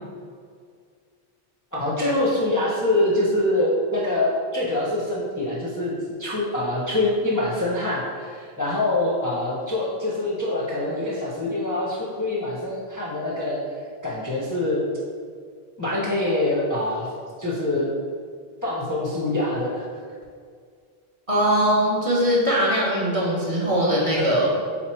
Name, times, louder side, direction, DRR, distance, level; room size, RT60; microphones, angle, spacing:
voice 1, 1.7-5.9 6.2-13.6 14.0-14.8 15.8-17.1 17.4-17.9 18.6-19.9 24.2-24.5, left 1 dB, 25° left, -5 dB, 0.5 m, -24 dB
voice 2, 21.3-24.5, equal, 35° right, -6 dB, 0.8 m, -21 dB
4.1 x 2.9 x 4.2 m, 2.1 s
omnidirectional pair, 1.0 m